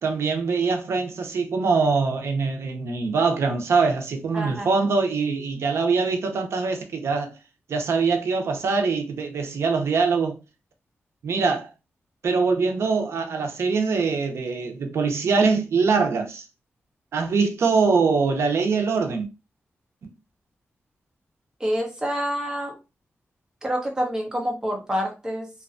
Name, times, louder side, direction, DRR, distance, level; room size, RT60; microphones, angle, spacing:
voice 1, 0.0-7.3 7.7-10.4 11.2-11.7 12.2-16.5 17.1-19.3 20.0-20.1, right 4 dB, 75° right, 0.5 m, -23 dB
voice 2, 4.3-4.7 21.6-22.8 23.6-25.5, equal, 15° right, 0.8 m, -27 dB
2.5 x 2.1 x 2.5 m
wide cardioid pair, 125°, 5 cm